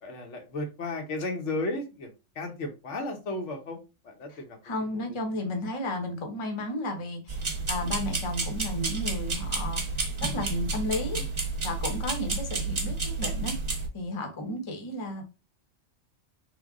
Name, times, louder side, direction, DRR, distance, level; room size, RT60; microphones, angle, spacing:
voice 1, 0.0-2.1 2.4-3.8 4.0-4.6 4.9-5.0 11.2-11.3, left 2 dB, 85° left, 1.2 m, -34 dB
voice 2, 4.3-9.8 10.2-11.2 11.6-13.5 13.9-15.2, left 1 dB, 30° left, 0.7 m, -33 dB
sound 1, 7.3-13.9, right 3 dB, 30° right, 0.6 m, -31 dB
3.2 x 2.2 x 3.5 m
omnidirectional pair, 1.2 m